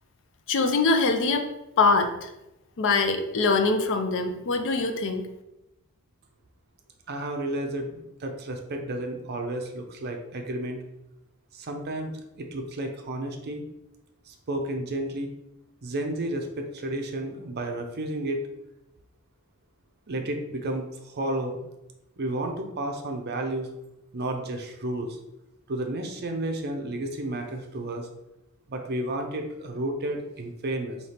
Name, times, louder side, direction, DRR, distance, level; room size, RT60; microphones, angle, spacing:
voice 1, 0.5-1.5 1.8-2.3 2.8-5.3, left 3 dB, 55° left, 7 dB, 0.4 m, -23 dB
voice 2, 7.1-10.8 11.5-13.6 14.3-15.3 15.8-18.4 20.1-21.6 22.2-23.7 24.1-25.2 25.7-28.1 28.7-31.0, right 1 dB, 45° right, 4 dB, 0.6 m, -32 dB
3.3 x 2.8 x 4.3 m, 0.94 s
head